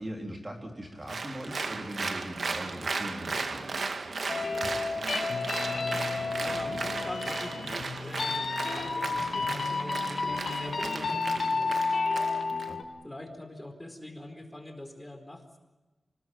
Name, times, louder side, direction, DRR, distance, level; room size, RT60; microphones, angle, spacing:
voice 1, 0.0-3.9 12.5-12.8, right 1 dB, 25° right, 3 dB, 3.8 m, -40 dB
Applause, 1.1-12.7, right 4 dB, 65° right, 2.1 m, -36 dB
sound 1, 4.3-12.8, left 4 dB, 65° left, 3.7 m, -31 dB
voice 2, 5.7-11.8 13.0-15.6, left 1 dB, 15° left, 5 dB, 4.3 m, -44 dB
26.0 x 20.0 x 9.1 m, 1.1 s
wide cardioid pair, 75°, 0 cm